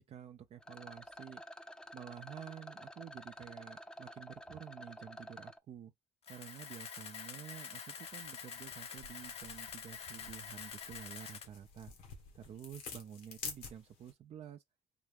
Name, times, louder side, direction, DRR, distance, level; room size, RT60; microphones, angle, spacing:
voice 1, 0.0-1.4 1.9-5.9 6.3-11.9 12.3-14.6, right 9 dB, 55° right, 0.5 m, -50 dB
Rattle, 0.6-5.6, left 1 dB, 5° left, 0.5 m, -50 dB
Camera, 6.2-11.5, left 7 dB, 55° left, 0.7 m, -47 dB
sound 1, 8.0-14.1, left 5 dB, 85° left, 1.3 m, -50 dB
3.8 x 2.3 x 3.5 m
supercardioid pair, 65°, 12 cm